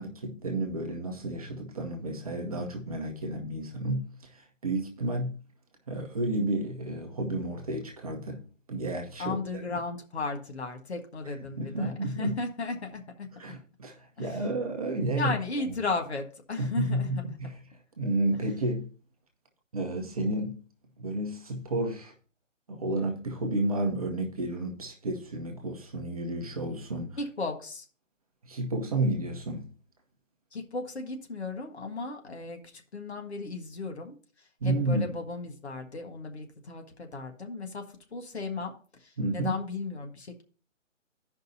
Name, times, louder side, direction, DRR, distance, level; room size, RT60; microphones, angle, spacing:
voice 1, 0.0-5.3 5.9-9.4 11.3-12.3 13.4-15.3 16.6-17.5 18.0-18.9 19.7-20.6 21.0-22.1 22.7-27.2 28.4-29.7 34.6-35.1 39.2-39.5, right 1 dB, 30° right, 0.9 m, -31 dB
voice 2, 9.2-13.3 14.2-14.4 15.2-17.2 27.2-27.9 30.5-38.7 39.0-40.4, left 3 dB, 55° left, 1.6 m, -35 dB
15.5 x 5.3 x 2.7 m
hypercardioid pair, 160°, 38 cm